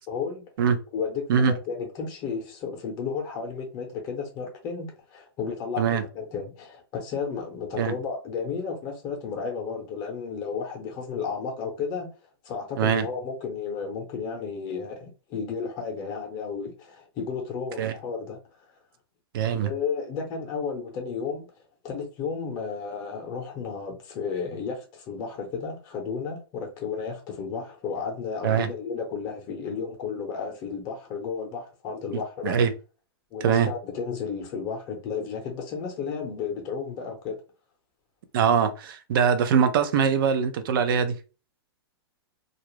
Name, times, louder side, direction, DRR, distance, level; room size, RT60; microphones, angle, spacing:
voice 1, 0.1-0.4 0.9-12.1 12.4-18.4 19.5-21.5 21.8-32.6 33.3-37.4, left 5 dB, 30° left, 0.7 m, -33 dB
voice 2, 19.3-19.7 28.4-28.7 32.1-32.7 33.4-33.7 38.3-41.2, right 7 dB, 55° right, 0.5 m, -22 dB
2.4 x 2.0 x 3.1 m
hypercardioid pair, 140°, 13 cm